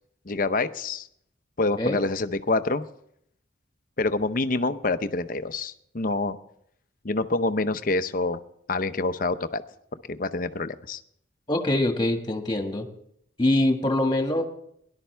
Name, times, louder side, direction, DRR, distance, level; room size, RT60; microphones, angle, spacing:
voice 1, 0.3-1.1 1.6-2.8 4.0-6.4 7.0-8.4 8.7-9.6 10.1-11.0, left 3 dB, 45° left, 11 dB, 0.7 m, -26 dB
voice 2, 11.5-12.9 13.4-14.4, left 1 dB, 25° left, 4 dB, 1.8 m, -24 dB
18.0 x 11.5 x 3.4 m, 0.71 s
head